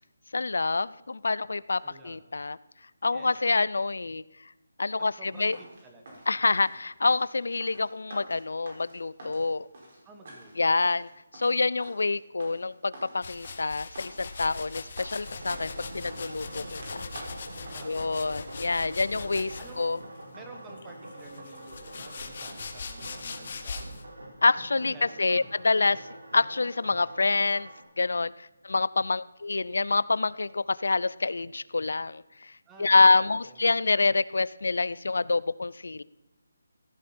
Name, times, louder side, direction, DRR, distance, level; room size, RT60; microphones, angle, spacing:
voice 1, 0.3-2.6 3.0-4.2 4.8-5.6 6.3-9.7 10.6-17.1 17.8-20.0 24.4-26.0 26.3-27.7 28.0-32.5 32.8-36.0, left 3 dB, 70° left, 19 dB, 0.5 m, -27 dB
voice 2, 1.8-2.2 3.1-3.4 5.0-6.2 6.6-6.8 10.0-11.0 17.7-18.2 19.6-19.8 20.3-23.8 24.8-25.4 32.7-33.8, right 2 dB, 10° right, 3 dB, 1.3 m, -51 dB
sound 1, 5.3-18.5, right 1 dB, 40° right, 5.4 m, -49 dB
sound 2, 13.2-20.0 20.8-24.0, left 4 dB, 40° left, 1.3 m, -41 dB
sound 3, 15.2-27.8, right 1 dB, 90° right, 4.4 m, -45 dB
15.0 x 14.5 x 4.4 m, 0.99 s
hypercardioid pair, 175°, 0 cm